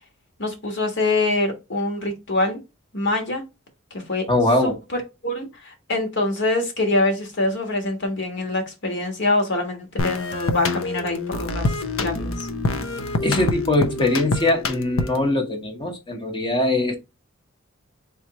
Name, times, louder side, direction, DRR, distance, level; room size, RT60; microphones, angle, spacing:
voice 1, 0.4-2.6 2.9-3.4 3.9-4.2 4.6-11.7 12.0-12.5, left 2 dB, 60° left, 1.4 m, -25 dB
voice 2, 4.3-4.8 13.2-17.0, left 2 dB, 25° left, 0.9 m, -21 dB
sound 1, 10.0-15.3, left 3 dB, 80° left, 0.7 m, -26 dB
3.5 x 3.2 x 4.1 m
head